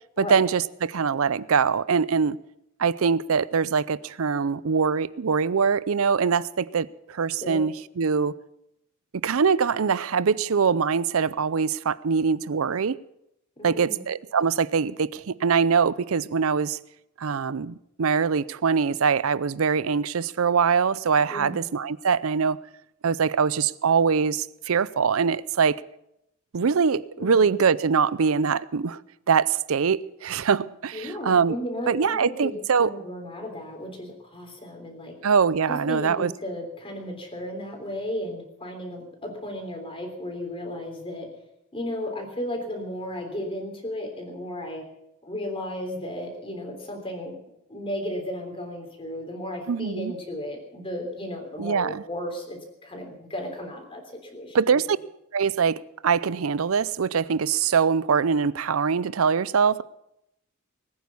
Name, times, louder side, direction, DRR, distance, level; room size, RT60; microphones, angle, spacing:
voice 1, 0.2-2.4 2.8-8.3 9.2-13.0 13.6-16.8 17.2-22.6 23.0-25.8 26.5-29.0 29.3-31.6 31.9-32.9 35.2-36.3 49.7-50.1 51.6-52.0 54.5-55.0 55.3-59.8, right 6 dB, 65° right, 19 dB, 0.5 m, -23 dB
voice 2, 13.6-14.1 21.3-21.7 27.2-27.4 30.9-35.1 35.7-41.3 41.7-44.8 45.2-47.3 47.7-54.0 54.3-54.8, left 1 dB, 25° left, 3 dB, 3.4 m, -34 dB
20.0 x 9.5 x 7.0 m, 0.82 s
head